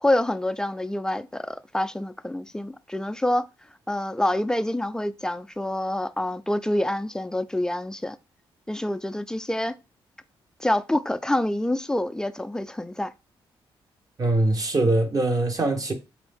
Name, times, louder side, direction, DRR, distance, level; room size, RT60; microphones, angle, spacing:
voice 1, 0.0-3.5 3.9-8.2 8.7-9.7 10.6-13.1, left 1 dB, 5° left, 0.3 m, -26 dB
voice 2, 14.2-15.9, right 2 dB, 35° right, 1.0 m, -22 dB
3.9 x 2.6 x 3.5 m
cardioid pair, 70°, 10 cm